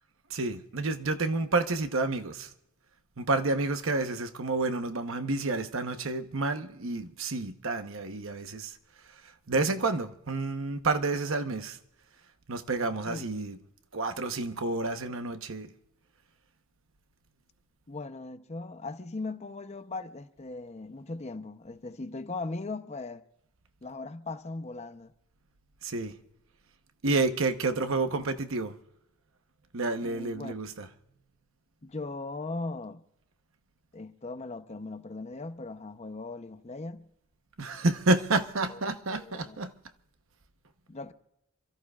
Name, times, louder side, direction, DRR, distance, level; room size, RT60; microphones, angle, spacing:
voice 1, 0.3-2.5 3.2-8.8 9.5-11.8 12.5-13.6 13.9-15.7 25.8-26.1 27.0-28.7 29.7-30.9 37.6-39.7, right 3 dB, 65° right, 1.0 m, -29 dB
voice 2, 17.9-23.2 23.8-25.1 30.0-30.5 31.8-33.0 33.9-37.1 38.7-38.8 39.2-39.7 40.9-41.1, left 3 dB, 30° left, 0.7 m, -39 dB
28.0 x 14.0 x 2.4 m
head